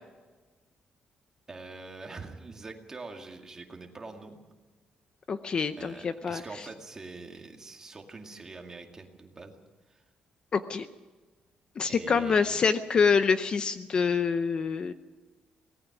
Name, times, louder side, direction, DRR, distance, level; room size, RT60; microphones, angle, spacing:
voice 1, 1.5-4.4 5.8-9.6 9.9-10.0 11.9-12.6, right 3 dB, 20° right, 3 dB, 2.2 m, -44 dB
voice 2, 5.3-6.7 10.5-10.9 11.8-14.9, left 5 dB, 30° left, 11 dB, 0.6 m, -26 dB
24.5 x 18.5 x 6.1 m, 1.3 s
cardioid pair, 175°, 3 cm